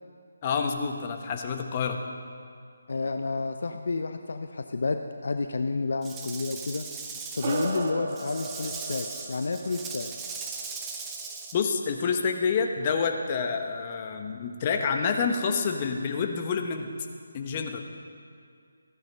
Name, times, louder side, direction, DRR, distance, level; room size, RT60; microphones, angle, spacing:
voice 1, 0.4-2.0 11.5-16.9 17.3-17.9, left 5 dB, 30° left, 4 dB, 1.1 m, -28 dB
voice 2, 2.9-6.8 7.3-10.1, left 3 dB, 60° left, 6 dB, 0.7 m, -30 dB
Rattle / Rattle (instrument), 6.0-11.6, right 5 dB, 10° right, 0.9 m, -39 dB
sound 1, 7.4-12.2, right 3 dB, 35° right, 1.4 m, -37 dB
15.0 x 10.5 x 5.5 m, 2.3 s
figure-of-eight pair, 155°, 0 cm